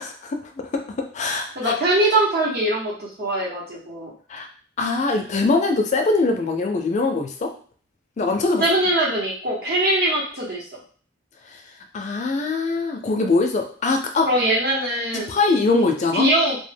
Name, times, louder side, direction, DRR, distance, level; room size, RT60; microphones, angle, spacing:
voice 1, 0.0-1.7 4.3-4.5 4.8-7.5 8.2-8.6 11.5-11.6 11.9-14.3 15.1-16.3, left 3 dB, 40° left, 4 dB, 0.3 m, -22 dB
voice 2, 1.6-4.1 8.6-10.7 14.2-15.3 16.1-16.6, right 1 dB, 55° right, -3 dB, 0.9 m, -22 dB
2.1 x 2.1 x 3.3 m, 0.43 s
head